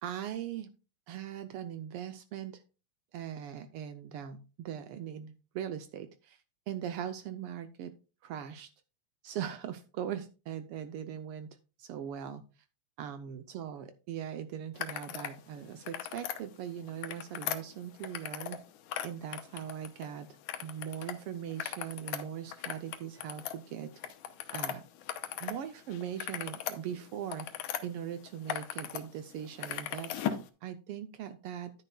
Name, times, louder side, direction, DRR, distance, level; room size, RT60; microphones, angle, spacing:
voice 1, 0.0-0.7 1.1-2.6 3.1-6.4 6.7-7.9 8.2-8.7 9.2-11.5 11.8-12.4 13.0-18.6 19.0-20.3 20.6-23.9 24.5-24.8 25.4-27.5 27.8-31.7, right 9 dB, 90° right, 9 dB, 1.2 m, -40 dB
sound 1, 14.8-15.4 15.7-16.4 16.9-18.6 18.9-20.1 20.5-21.1 21.5-25.6 25.9-27.8 28.3-29.0 29.3-30.5, left 10 dB, 85° left, 2.3 m, -38 dB
11.0 x 9.9 x 2.3 m, 0.32 s
omnidirectional pair, 3.4 m